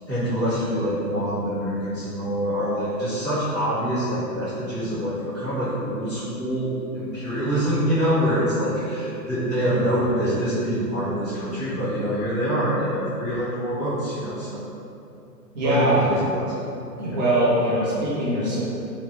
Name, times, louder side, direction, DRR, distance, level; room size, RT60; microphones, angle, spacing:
voice 1, 0.1-14.6 15.6-16.5 17.0-17.2, equal, 5° left, -26 dB, 0.4 m, -25 dB
voice 2, 9.6-10.1 15.5-16.1 17.0-18.6, right 1 dB, 25° right, -9 dB, 0.7 m, -22 dB
3.1 x 2.1 x 3.1 m, 2.7 s
hypercardioid pair, 140°, 49 cm